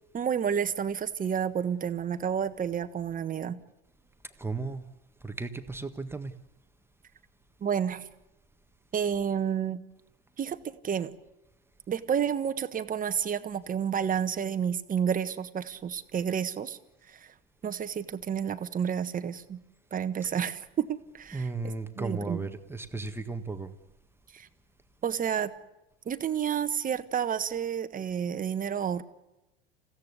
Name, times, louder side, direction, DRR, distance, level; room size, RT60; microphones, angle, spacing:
voice 1, 0.1-3.6 7.6-8.0 8.9-9.8 10.4-11.1 11.9-16.8 17.1-17.3 17.6-19.6 19.9-21.5 22.0-22.4 24.3-24.5 25.0-25.5 26.0-29.0, right 8 dB, 25° right, 1.4 m, -30 dB
voice 2, 4.4-4.8 5.2-6.3 20.2-20.3 21.3-23.7, right 3 dB, 5° right, 1.6 m, -35 dB
28.0 x 16.0 x 8.3 m
hypercardioid pair, 90°, 32 cm